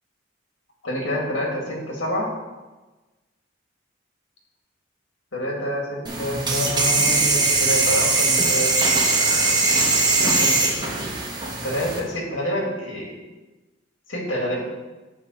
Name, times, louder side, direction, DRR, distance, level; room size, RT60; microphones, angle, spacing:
voice 1, 0.8-2.3 5.3-8.7 10.2-11.1 11.6-13.1 14.1-14.7, equal, 80° left, -1 dB, 2.0 m, -28 dB
sound 1, 6.1-12.0, right 3 dB, 25° right, 1.1 m, -20 dB
8.9 x 3.7 x 6.4 m, 1.2 s
head